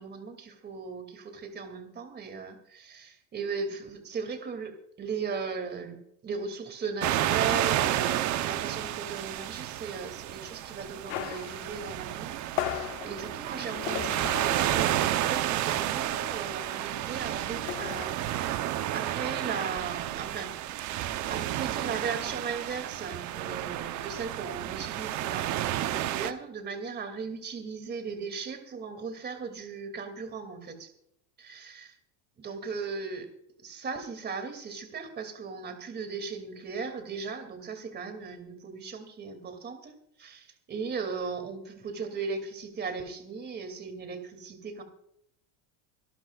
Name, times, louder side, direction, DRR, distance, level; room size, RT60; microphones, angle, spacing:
voice 1, 0.0-12.4 12.6-20.5 21.3-30.9 31.4-32.0 32.4-33.3 33.6-39.9 40.2-44.8, right 5 dB, 25° right, 7 dB, 2.7 m, -37 dB
sound 1, 7.0-26.3, right 13 dB, 45° right, 0.9 m, -31 dB
sound 2, 11.1-15.3 15.6-15.8 16.1-18.0, left 12 dB, 85° left, 1.6 m, -37 dB
26.0 x 12.5 x 2.5 m, 0.74 s
cardioid pair, 145°, 41 cm